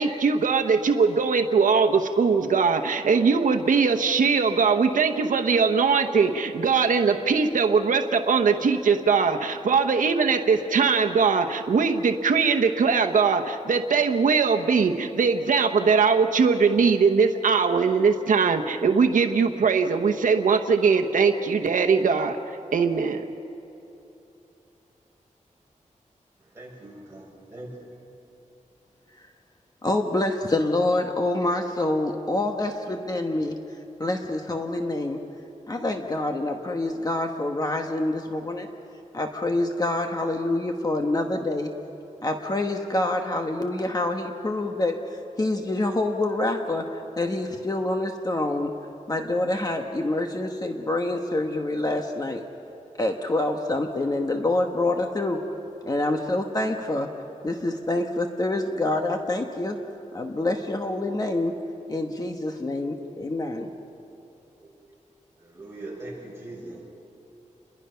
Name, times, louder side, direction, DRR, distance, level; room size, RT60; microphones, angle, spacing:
voice 1, 0.0-23.3, right 5 dB, 90° right, 5 dB, 1.0 m, -21 dB
voice 2, 26.4-27.9 64.6-64.7 65.4-66.8, right 2 dB, 20° right, -4 dB, 7.1 m, -41 dB
voice 3, 29.8-33.5 34.0-35.2 35.7-38.7 39.1-41.7 42.2-46.8 47.2-48.7 49.1-52.4 53.0-55.4 55.8-57.1 57.4-59.8 60.1-61.5 61.9-63.7, left 2 dB, 30° left, 3 dB, 1.2 m, -26 dB
29.5 x 22.0 x 5.7 m, 3.0 s
wide cardioid pair, 135°, 13 cm